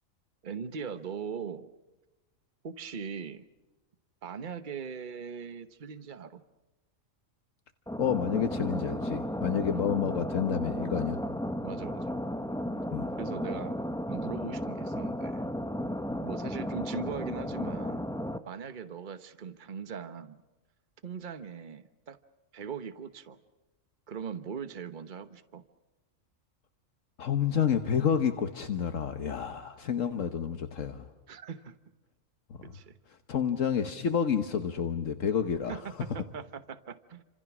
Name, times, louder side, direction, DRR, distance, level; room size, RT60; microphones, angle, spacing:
voice 1, 0.4-1.7 2.6-3.4 4.2-6.4 9.7-9.8 11.6-12.2 12.7-12.9 13.2-13.8 14.1-15.4 16.2-18.1 18.5-20.4 21.0-22.2 22.5-23.4 24.1-25.6 31.3-31.8 32.6-33.0 35.7-37.2, right 6 dB, 40° right, 11 dB, 1.2 m, -40 dB
sound 1, 7.9-18.4, equal, 5° left, 0.8 m, -34 dB
voice 2, 8.0-11.2 12.9-13.1 27.2-31.1 33.3-35.8, left 7 dB, 70° left, 7 dB, 1.5 m, -29 dB
29.0 x 26.5 x 6.1 m, 1.1 s
omnidirectional pair, 1.4 m